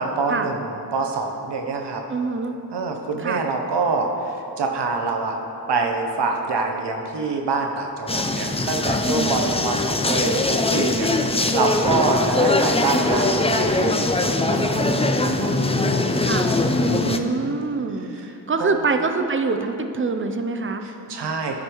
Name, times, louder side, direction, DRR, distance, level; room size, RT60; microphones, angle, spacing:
voice 1, 0.0-2.0 2.7-5.4 5.7-11.1 11.5-15.7 17.0-17.6 18.1-18.3 18.6-18.7 20.8-21.6, right 3 dB, 85° right, 2 dB, 1.0 m, -26 dB
voice 2, 2.1-2.5 3.2-3.4 9.1-9.5 16.2-16.5 16.8-18.1 18.5-20.8, right 4 dB, 30° right, 6 dB, 0.6 m, -25 dB
sound 1, 8.1-17.2, left 2 dB, 15° left, 0.5 m, -21 dB
12.5 x 5.2 x 4.6 m, 2.9 s
wide cardioid pair, 80°, 40 cm